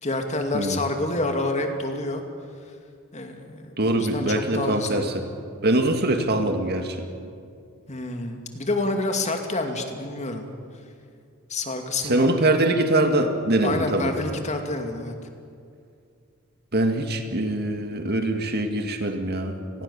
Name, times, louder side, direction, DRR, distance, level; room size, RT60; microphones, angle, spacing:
voice 1, 0.0-2.2 3.1-5.0 7.9-10.5 11.5-12.8 13.6-15.1, left 2 dB, 35° left, 4 dB, 2.5 m, -28 dB
voice 2, 3.8-5.2 5.6-7.0 12.0-14.1 16.7-19.8, right 1 dB, 50° right, 5 dB, 2.2 m, -23 dB
30.0 x 21.0 x 7.2 m, 2.3 s
head